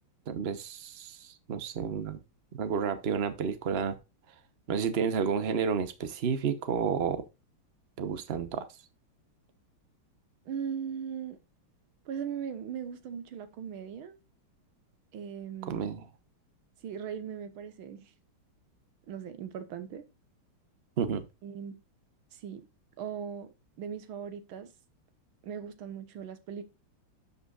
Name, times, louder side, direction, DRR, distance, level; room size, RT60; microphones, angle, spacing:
voice 1, 0.3-2.2 2.6-4.0 4.7-7.2 8.0-8.7 15.7-16.0 21.0-21.2, right 6 dB, 50° right, 0.7 m, -31 dB
voice 2, 10.5-11.4 12.1-14.2 15.1-15.9 16.8-18.1 19.1-20.0 21.4-21.8 22.3-22.6 23.0-23.5 23.8-24.7 25.4-26.6, right 8 dB, 70° right, 1.9 m, -39 dB
11.5 x 5.4 x 2.4 m
omnidirectional pair, 2.4 m